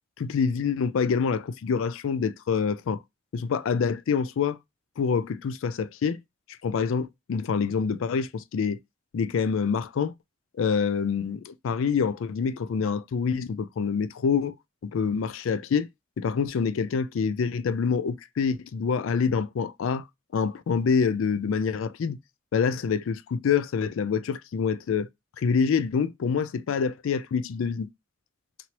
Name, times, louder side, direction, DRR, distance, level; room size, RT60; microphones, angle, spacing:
voice 1, 0.2-3.0 3.3-4.6 5.0-6.2 6.6-8.8 9.1-10.1 10.5-14.5 14.8-15.9 16.2-20.1 20.3-22.2 22.5-25.1 25.4-27.9, left 6 dB, 70° left, 0.4 m, -26 dB
3.0 x 2.7 x 2.8 m
head